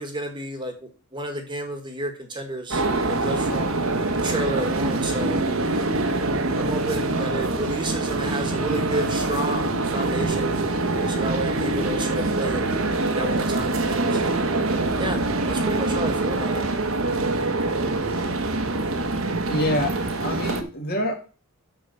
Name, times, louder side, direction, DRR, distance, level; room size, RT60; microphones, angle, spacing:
voice 1, 0.0-3.7 4.2-5.4 6.6-10.5 10.8-12.6 13.1-14.2 14.6-15.2 15.5-16.7, right 1 dB, 20° right, 5 dB, 1.5 m, -31 dB
sound 1, 2.7-20.6, right 2 dB, 65° right, 1.2 m, -24 dB
voice 2, 19.4-21.1, left 1 dB, 45° left, 3 dB, 2.2 m, -27 dB
6.7 x 5.6 x 6.8 m, 0.36 s
head